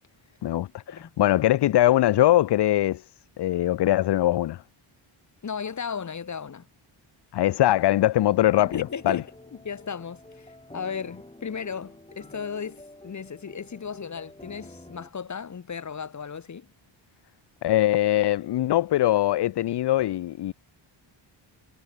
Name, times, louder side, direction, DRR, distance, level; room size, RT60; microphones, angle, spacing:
voice 1, 1.2-3.0 3.4-4.6 7.3-9.2 17.6-20.5, left 14 dB, 55° left, 0.6 m, -21 dB
voice 2, 5.4-6.7 8.7-9.2 9.6-16.7, left 6 dB, 35° left, 1.3 m, -35 dB
sound 1, 8.3-15.1, left 1 dB, 10° left, 6.8 m, -48 dB
cardioid pair, 90°, 49 cm